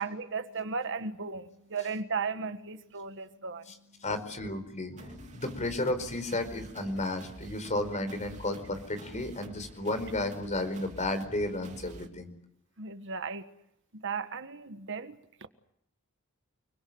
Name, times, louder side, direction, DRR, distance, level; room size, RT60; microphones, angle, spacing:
voice 1, 0.0-4.0 12.8-13.4 13.9-15.5, right 5 dB, 60° right, 1.6 m, -36 dB
voice 2, 4.0-12.3, left 2 dB, 35° left, 4.7 m, -33 dB
sound 1, 5.0-12.1, right 1 dB, 35° right, 3.0 m, -48 dB
30.0 x 21.5 x 7.9 m
head